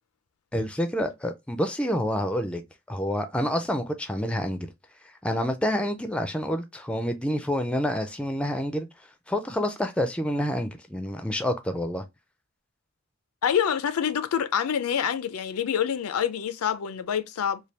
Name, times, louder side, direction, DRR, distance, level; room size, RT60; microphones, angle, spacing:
voice 1, 0.5-2.6 2.9-4.7 5.2-8.9 9.3-12.0, equal, 5° left, 0.3 m, -28 dB
voice 2, 13.4-17.6, left 8 dB, 85° left, 0.4 m, -26 dB
3.3 x 2.2 x 4.1 m
head